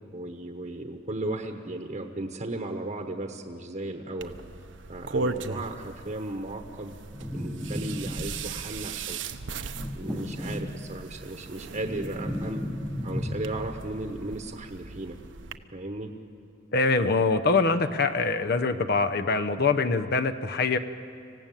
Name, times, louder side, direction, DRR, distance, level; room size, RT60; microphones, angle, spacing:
voice 1, 0.1-4.4 4.9-7.0 7.3-9.2 10.0-12.6 13.0-15.2 15.7-16.1, right 2 dB, 35° right, 4 dB, 1.1 m, -35 dB
sound 1, 4.2-15.6, right 3 dB, 65° right, 0.8 m, -38 dB
sound 2, 7.1-8.7 9.7-11.2 11.5-13.9, equal, ahead, 0.9 m, -34 dB
voice 2, 16.7-20.8, left 4 dB, 50° left, 8 dB, 0.8 m, -24 dB
26.0 x 16.0 x 9.1 m, 2.6 s
head